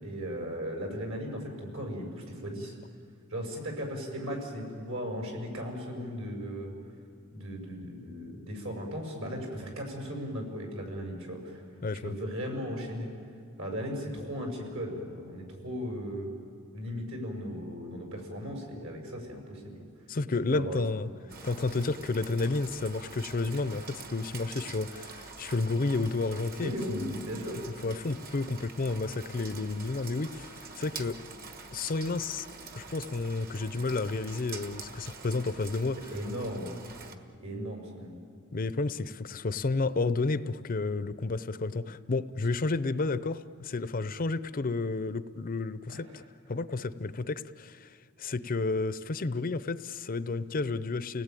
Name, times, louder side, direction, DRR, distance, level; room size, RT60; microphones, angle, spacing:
voice 1, 0.0-2.7 3.3-6.7 7.3-11.6 12.0-13.1 13.6-16.3 16.7-19.8 20.5-20.8 26.6-27.6 36.1-36.7 37.4-38.2 45.9-46.0, equal, 75° right, 2 dB, 6.0 m, -37 dB
voice 2, 11.8-12.1 20.1-21.1 21.4-27.2 27.8-31.2 31.7-32.5 32.7-36.0 38.5-46.2 46.5-51.2, left 3 dB, 45° left, 14 dB, 0.6 m, -31 dB
Rain, 21.3-37.1, right 4 dB, 45° right, 1.5 m, -46 dB
30.0 x 18.5 x 9.1 m, 2.2 s
head